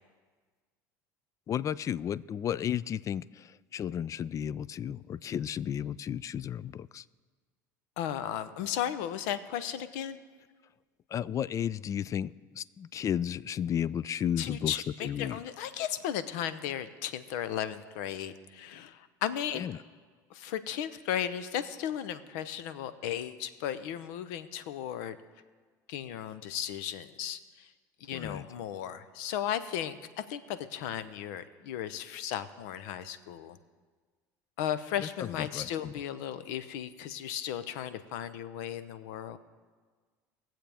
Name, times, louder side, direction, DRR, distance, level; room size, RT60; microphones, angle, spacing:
voice 1, 1.5-3.2 3.7-7.0 11.1-14.7 15.0-15.4 19.6-19.7 28.1-28.4 35.5-35.9, left 9 dB, 35° left, 21 dB, 0.3 m, -33 dB
voice 2, 8.0-10.2 14.4-19.7 20.3-25.2 25.9-27.7 28.0-33.6 34.6-39.4, left 10 dB, 75° left, 13 dB, 0.7 m, -35 dB
21.0 x 7.5 x 3.5 m, 1.5 s
hypercardioid pair, 85°, 10 cm